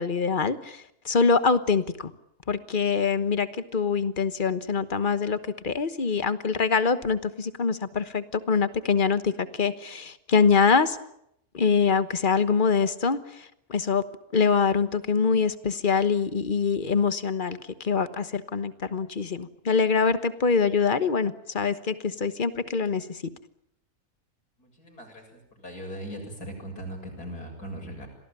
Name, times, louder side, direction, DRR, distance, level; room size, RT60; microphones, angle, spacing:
voice 1, 0.0-2.1 2.5-11.0 11.5-14.0 14.3-23.2, left 5 dB, 35° left, 13 dB, 1.3 m, -24 dB
voice 2, 24.6-28.1, equal, 85° left, 2 dB, 7.9 m, -39 dB
26.5 x 18.5 x 9.0 m, 0.76 s
omnidirectional pair, 1.6 m